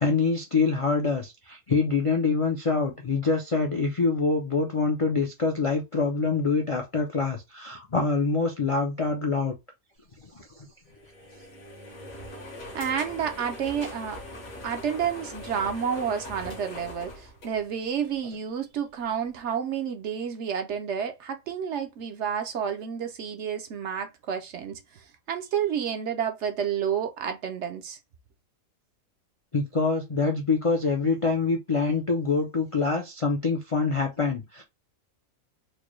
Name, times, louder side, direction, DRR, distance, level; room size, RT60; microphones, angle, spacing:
voice 1, 0.0-9.5 10.2-10.7 29.5-34.6, left 4 dB, 55° left, 0.3 m, -25 dB
sound 1, 10.8-18.1, left 1 dB, 80° left, 1.8 m, -41 dB
voice 2, 12.7-14.2 14.6-28.0, right 8 dB, 65° right, 0.8 m, -30 dB
4.5 x 2.2 x 3.1 m
omnidirectional pair, 1.4 m